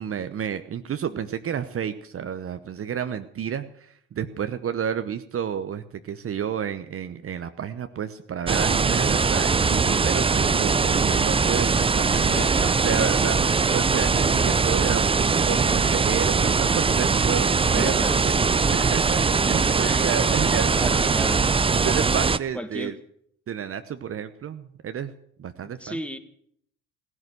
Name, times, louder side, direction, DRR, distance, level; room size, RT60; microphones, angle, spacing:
voice 1, 0.0-18.0 18.9-19.2 19.5-21.3 21.8-22.9 23.5-25.1 25.4-26.0, right 8 dB, 40° right, 10 dB, 1.0 m, -31 dB
sound 1, 8.5-22.4, right 4 dB, 15° right, 0.6 m, -21 dB
voice 2, 12.1-12.8 13.1-13.7 17.8-18.5 18.7-18.9 19.8-20.1 20.7-21.4 22.5-22.9 25.6-26.2, equal, 5° left, 9 dB, 1.7 m, -35 dB
16.0 x 11.0 x 8.0 m, 0.68 s
hypercardioid pair, 65°, 35 cm